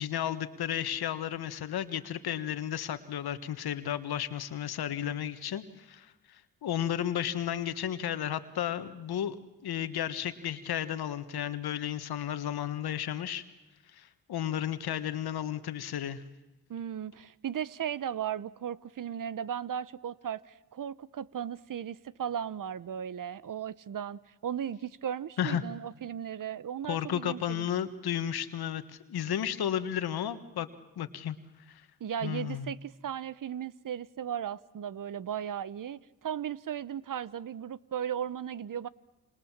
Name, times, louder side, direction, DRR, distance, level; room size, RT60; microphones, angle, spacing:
voice 1, 0.0-9.4 9.6-13.4 13.9-16.2 25.4-25.6 26.9-30.7 31.0-31.4 31.7-31.8 32.2-32.7, left 10 dB, 75° left, 11 dB, 1.6 m, -33 dB
voice 2, 16.7-27.7 32.0-38.9, right 9 dB, 55° right, 18 dB, 1.0 m, -36 dB
28.5 x 25.5 x 7.4 m, 1.0 s
supercardioid pair, 50°, 38 cm